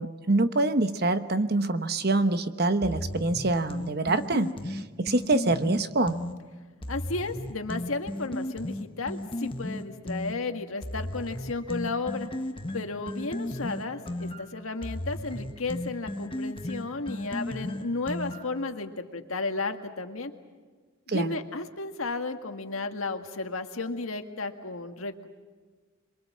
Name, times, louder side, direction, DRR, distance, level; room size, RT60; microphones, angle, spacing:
voice 1, 0.0-6.2 21.1-21.3, right 2 dB, 50° right, 10 dB, 1.1 m, -25 dB
sound 1, 2.8-6.4 6.8-10.4 10.8-18.6, left 1 dB, 25° left, 1.1 m, -35 dB
voice 2, 6.9-12.3 12.7-20.3 21.1-25.3, left 3 dB, 90° left, 6 dB, 1.8 m, -33 dB
27.0 x 23.0 x 7.5 m, 1.4 s
head